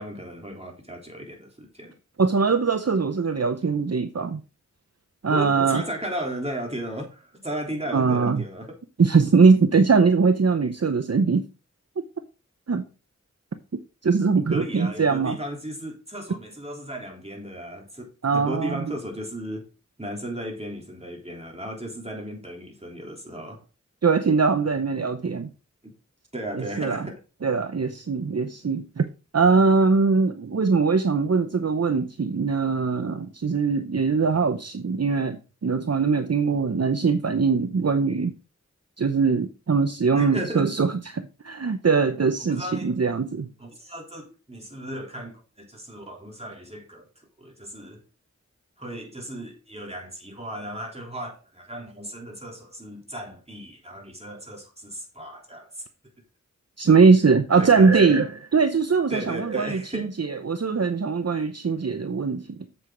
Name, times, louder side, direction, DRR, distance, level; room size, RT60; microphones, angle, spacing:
voice 1, 0.0-2.0 5.3-8.8 14.5-19.7 20.0-23.6 25.8-25.9 26.3-27.2 40.2-40.7 42.4-43.0 43.6-47.1 47.4-48.0 48.8-55.8 57.6-58.2 59.1-60.2, equal, 20° right, 3.5 m, -35 dB
voice 2, 2.2-4.4 5.2-5.8 7.9-8.4 9.0-11.4 12.7-12.9 13.7-15.4 18.2-18.9 24.0-25.5 26.5-27.1 27.4-29.0 29.3-38.3 39.0-43.5 56.8-62.6, right 4 dB, 60° right, 0.7 m, -21 dB
7.8 x 7.8 x 3.8 m
wide cardioid pair, 45°, 29 cm